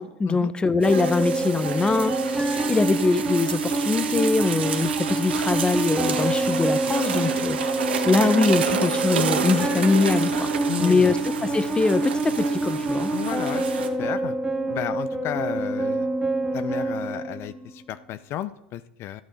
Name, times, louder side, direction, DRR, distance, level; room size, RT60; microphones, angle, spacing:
voice 1, 0.0-10.5 10.8-13.1, left 4 dB, 15° left, 15 dB, 0.8 m, -23 dB
sound 1, 0.8-17.8, right 2 dB, 10° right, 2.2 m, -26 dB
sound 2, 0.8-13.9, right 7 dB, 85° right, 1.6 m, -30 dB
voice 2, 10.7-11.1 13.1-14.4 14.7-16.1 16.5-19.2, left 12 dB, 50° left, 14 dB, 0.6 m, -33 dB
13.5 x 8.9 x 5.1 m, 0.92 s
hypercardioid pair, 90°, 6 cm